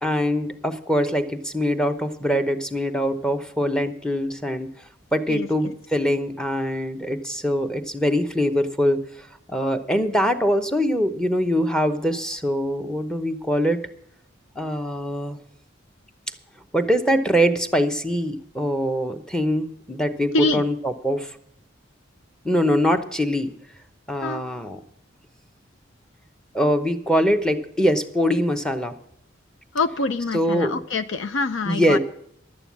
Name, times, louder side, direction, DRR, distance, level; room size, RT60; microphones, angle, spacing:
voice 1, 0.0-4.7 5.1-13.8 14.6-15.4 16.7-21.4 22.4-23.5 24.1-24.8 26.5-29.0 30.3-30.8 31.6-32.0, equal, 5° left, 8 dB, 0.8 m, -23 dB
voice 2, 29.7-32.0, left 3 dB, 80° left, 10 dB, 0.7 m, -25 dB
11.5 x 8.9 x 7.2 m, 0.70 s
head